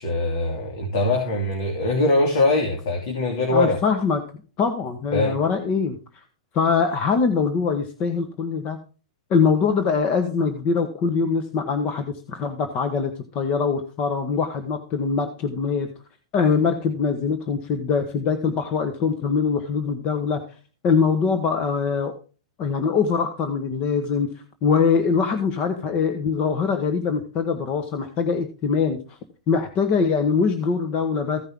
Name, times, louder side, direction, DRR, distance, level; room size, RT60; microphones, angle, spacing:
voice 1, 0.0-3.8 5.1-5.4, left 2 dB, 60° left, 1 dB, 2.8 m, -22 dB
voice 2, 3.5-4.2 4.6-6.0 6.5-8.8 9.3-15.9 16.3-20.4 20.8-22.1 22.6-24.3 24.6-29.2 29.5-31.4, left 5 dB, 35° left, 7 dB, 1.3 m, -23 dB
15.5 x 5.4 x 3.7 m, 0.35 s
hypercardioid pair, 140°, 3 cm